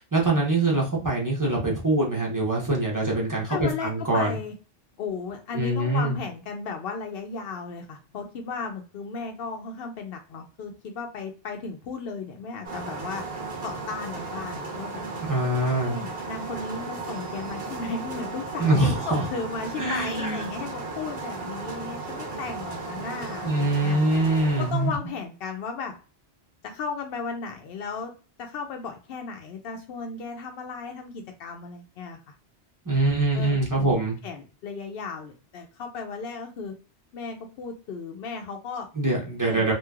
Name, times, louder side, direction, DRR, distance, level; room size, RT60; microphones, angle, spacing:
voice 1, 0.0-4.3 5.5-6.1 15.3-16.0 18.6-19.2 19.8-20.5 23.4-24.9 32.8-34.2 39.0-39.7, right 2 dB, 20° right, -3 dB, 0.9 m, -24 dB
voice 2, 3.5-4.5 5.0-13.2 13.6-15.0 15.8-24.0 24.6-25.9 26.6-28.1 28.4-32.3 33.3-34.0 34.2-36.7 37.1-38.9 39.5-39.7, left 5 dB, 70° left, 3 dB, 0.7 m, -35 dB
sound 1, 12.6-24.9, right 3 dB, 65° right, 1.2 m, -35 dB
3.0 x 2.8 x 2.3 m, 0.35 s
omnidirectional pair, 1.0 m